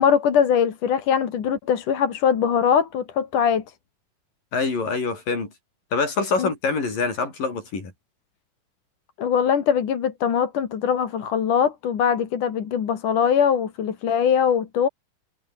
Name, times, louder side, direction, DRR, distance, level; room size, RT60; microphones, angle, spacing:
voice 1, 0.0-3.6 6.4-6.5 9.2-14.9, left 7 dB, 70° left, 3.8 m, -21 dB
voice 2, 4.5-5.5 5.9-7.9, left 4 dB, 85° left, 8.4 m, -25 dB
omnidirectional pair, 3.8 m